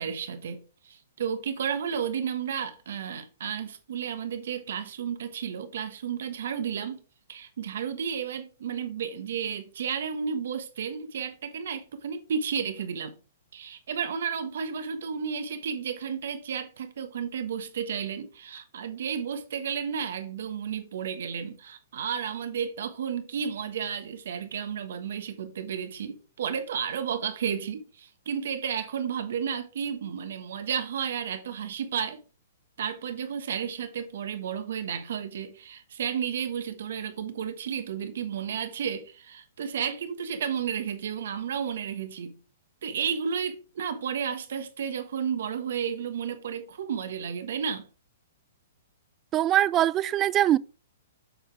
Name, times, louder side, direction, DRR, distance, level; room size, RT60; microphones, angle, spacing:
voice 1, 0.0-7.0 7.3-13.1 13.5-32.2 32.8-42.3 42.8-47.9, right 7 dB, 65° right, 1.3 m, -32 dB
voice 2, 49.3-50.6, right 13 dB, 25° right, 0.4 m, -22 dB
8.6 x 5.7 x 3.4 m
hypercardioid pair, 120°, 0 cm